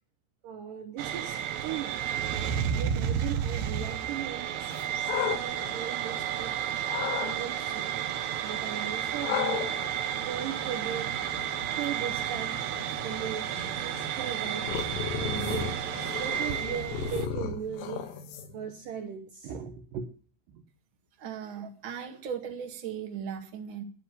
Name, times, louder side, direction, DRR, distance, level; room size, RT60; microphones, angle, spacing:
voice 1, 0.4-2.2 2.7-6.5 7.1-8.0 8.4-9.8 10.3-11.1 11.7-12.5 12.8-14.7 15.2-15.8 16.2-18.0 18.5-20.1 20.5-20.6, right 9 dB, 85° right, 6 dB, 1.9 m, -38 dB
sound 1, 1.0-17.3, right 9 dB, 70° right, 2.8 m, -32 dB
sound 2, 4.7-6.4 6.9-7.4 9.2-18.7, left 7 dB, 70° left, 3.5 m, -36 dB
voice 2, 21.2-23.8, right 7 dB, 50° right, 3 dB, 1.4 m, -37 dB
11.0 x 10.0 x 7.9 m, 0.44 s
omnidirectional pair, 5.4 m